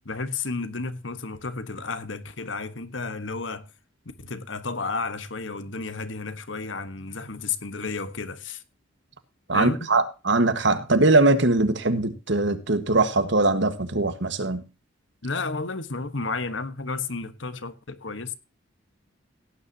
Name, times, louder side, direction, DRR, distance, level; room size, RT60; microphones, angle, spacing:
voice 1, 0.0-3.7 4.2-8.6 9.5-9.9 15.2-18.3, left 4 dB, 65° left, 1.4 m, -32 dB
voice 2, 9.5-14.6, right 2 dB, 65° right, 1.6 m, -21 dB
17.5 x 9.8 x 2.9 m
head